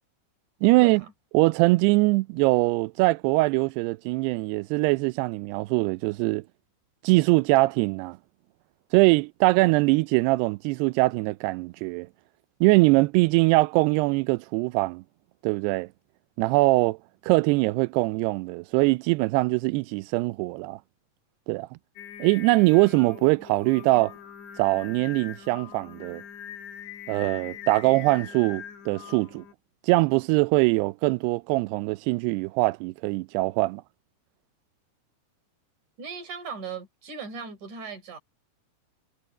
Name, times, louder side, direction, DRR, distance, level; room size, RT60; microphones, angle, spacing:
voice 1, 0.6-1.0 1.3-6.4 7.0-8.2 8.9-12.1 12.6-15.0 15.4-15.9 16.4-17.0 17.3-20.8 21.5-21.7 22.2-24.1 24.6-26.2 27.1-29.4 29.8-33.8, right 23 dB, 85° right, 2.6 m, -22 dB
Singing, 22.0-29.5, left 9 dB, 85° left, 4.8 m, -42 dB
voice 2, 36.0-38.2, right 6 dB, 45° right, 6.0 m, -38 dB
omnidirectional pair, 4.8 m